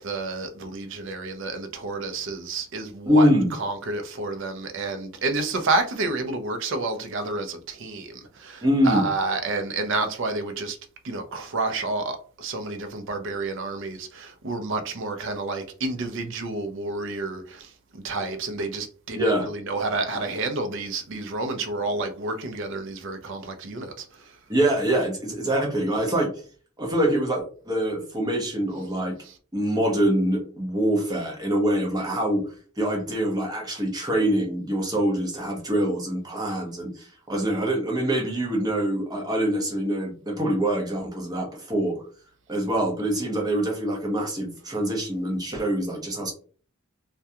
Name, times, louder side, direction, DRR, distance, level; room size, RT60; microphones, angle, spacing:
voice 1, 0.0-3.3 3.6-10.8 11.0-24.3, right 3 dB, 60° right, 0.5 m, -30 dB
voice 2, 3.1-3.5 8.6-9.1 19.1-19.5 24.5-26.3 26.8-29.2 29.5-32.5 32.8-42.0 42.5-46.3, right 1 dB, 20° right, 0.7 m, -24 dB
2.3 x 2.2 x 2.7 m
head